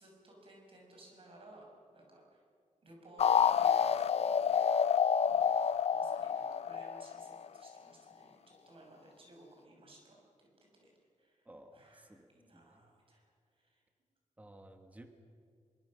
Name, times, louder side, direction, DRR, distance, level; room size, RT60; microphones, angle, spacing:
voice 1, 0.0-2.4 2.8-4.8 5.2-10.9 11.2-13.2 13.5-13.8, right 1 dB, 45° right, 0 dB, 6.2 m, -58 dB
sound 1, 3.2-7.7, left 7 dB, 55° left, 0.5 m, -28 dB
voice 2, 5.3-5.7 11.4-12.9 14.4-15.1, right 1 dB, 10° right, 6 dB, 1.5 m, -55 dB
24.5 x 23.5 x 6.4 m, 2.3 s
wide cardioid pair, 175°, 13 cm